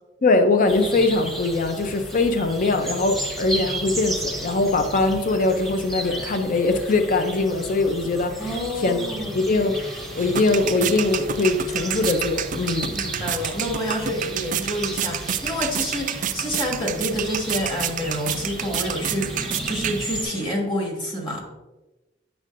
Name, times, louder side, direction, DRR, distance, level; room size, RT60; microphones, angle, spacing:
voice 1, 0.2-8.5 8.8-9.0 9.3-13.0, left 3 dB, 45° left, 7 dB, 0.6 m, -22 dB
sound 1, 0.7-20.2, right 1 dB, ahead, 0.8 m, -34 dB
voice 2, 8.4-9.4 12.9-21.4, equal, 25° left, 0 dB, 1.4 m, -28 dB
tongue click beatbox, 9.7-20.5, right 9 dB, 45° right, 0.3 m, -30 dB
7.8 x 6.5 x 2.5 m, 1.1 s
head